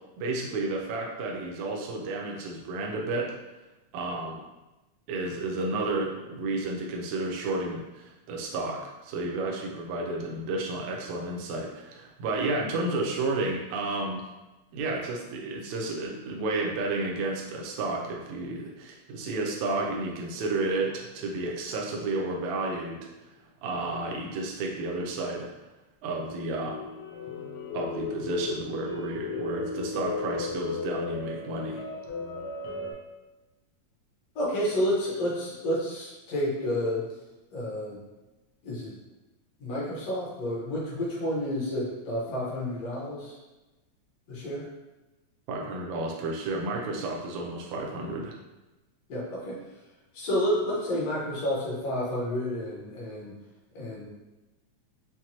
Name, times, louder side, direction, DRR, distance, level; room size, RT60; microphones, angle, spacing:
voice 1, 0.2-3.3 3.9-4.4 5.1-14.2 14.7-23.3 23.6-25.5 26.0-26.8 27.7-31.8 45.5-48.3, right 2 dB, 80° right, 0 dB, 1.8 m, -31 dB
sound 1, 26.3-32.9, left 4 dB, 85° left, 1.2 m, -35 dB
voice 2, 34.4-37.0 37.5-38.0 38.6-39.0 39.6-43.4 44.3-44.6 49.1-49.6 50.1-53.3 53.7-54.1, equal, 65° left, -5 dB, 2.0 m, -30 dB
5.9 x 2.2 x 2.8 m, 1.1 s
omnidirectional pair, 3.3 m